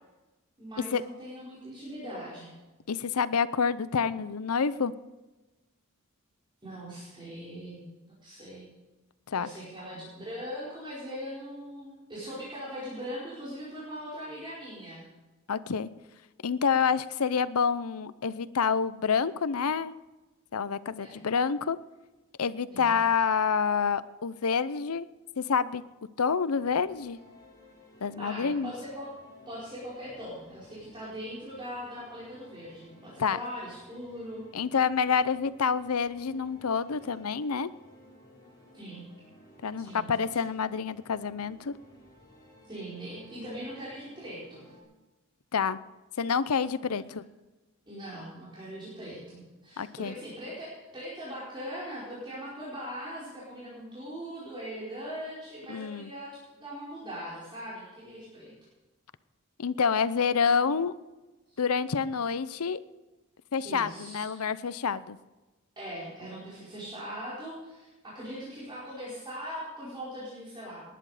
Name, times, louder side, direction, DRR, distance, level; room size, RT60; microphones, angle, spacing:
voice 1, 0.6-2.5 6.6-8.7 9.4-15.0 21.0-21.3 22.7-22.9 28.2-29.1 29.5-34.4 38.7-39.1 39.8-40.1 40.3-40.4 42.7-44.7 46.8-47.1 47.9-56.3 56.5-58.5 61.5-61.6 63.6-64.3 65.8-70.8, equal, 25° right, -9 dB, 4.8 m, -41 dB
voice 2, 2.9-4.9 9.3-9.5 15.5-15.9 16.4-19.9 20.5-21.8 22.4-25.1 25.4-25.8 26.2-27.2 28.0-28.7 33.2-33.4 34.5-37.7 39.6-41.7 45.5-45.8 46.2-47.2 49.8-50.1 55.7-56.1 59.6-60.9 61.6-62.8 63.5-65.2, left 6 dB, 85° left, 16 dB, 0.7 m, -28 dB
sound 1, 26.6-44.8, equal, 15° left, 6.0 m, -56 dB
19.5 x 11.0 x 5.0 m, 1.1 s
head